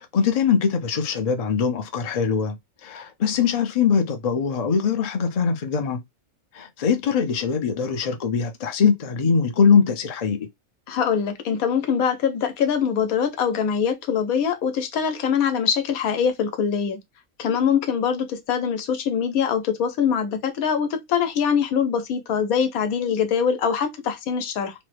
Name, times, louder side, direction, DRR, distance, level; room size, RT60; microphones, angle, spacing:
voice 1, 0.0-6.0 6.5-10.5, left 6 dB, 60° left, 0.4 m, -22 dB
voice 2, 10.9-17.0 17.4-24.7, left 7 dB, 80° left, 1.1 m, -23 dB
3.1 x 2.1 x 3.2 m
omnidirectional pair, 1.5 m